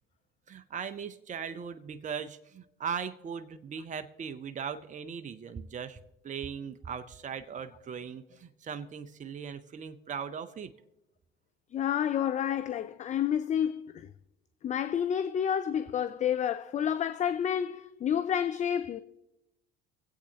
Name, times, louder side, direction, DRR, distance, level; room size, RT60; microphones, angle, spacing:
voice 1, 0.5-10.7, right 7 dB, 25° right, 0.7 m, -39 dB
voice 2, 11.7-14.1 14.6-19.0, left 9 dB, 25° left, 0.4 m, -29 dB
23.5 x 8.2 x 2.8 m
hypercardioid pair, 70°, 31 cm